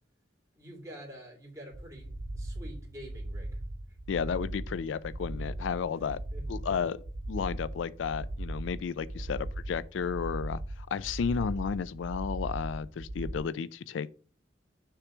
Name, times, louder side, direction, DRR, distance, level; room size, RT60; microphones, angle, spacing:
voice 1, 0.5-3.6 6.3-6.6 9.2-9.3, equal, 15° right, 2.5 m, -48 dB
sound 1, 1.7-13.4, right 1 dB, 50° right, 0.9 m, -38 dB
voice 2, 4.1-6.2 6.5-14.1, left 6 dB, 85° left, 0.4 m, -33 dB
6.5 x 3.1 x 5.9 m
head